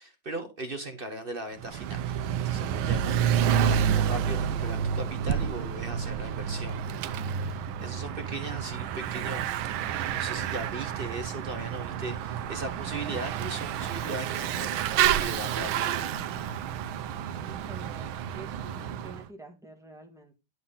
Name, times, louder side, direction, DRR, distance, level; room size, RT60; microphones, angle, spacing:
voice 1, 0.0-2.1 2.4-3.2 3.5-6.9 7.2-9.5 10.1-16.3, right 2 dB, 35° right, 1.0 m, -38 dB
Bicycle / Mechanisms, 1.6-19.2, right 9 dB, 80° right, 1.5 m, -29 dB
voice 2, 17.4-18.8 19.0-20.3, right 3 dB, ahead, 1.7 m, -47 dB
11.0 x 5.7 x 4.0 m
omnidirectional pair, 2.3 m